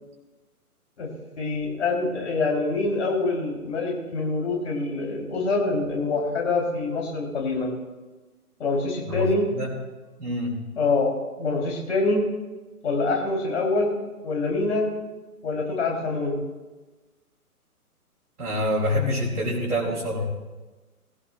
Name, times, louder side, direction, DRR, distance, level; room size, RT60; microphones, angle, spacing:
voice 1, 1.4-7.7 8.6-9.5 10.8-11.1 11.4-12.2 12.8-13.9 14.2-14.9 15.4-16.4, left 3 dB, 50° left, -1 dB, 4.2 m, -25 dB
voice 2, 9.1-9.7 10.2-10.6 18.4-20.3, left 1 dB, 75° right, -4 dB, 3.0 m, -26 dB
19.5 x 15.5 x 2.6 m, 1.2 s
figure-of-eight pair, 135°, 46 cm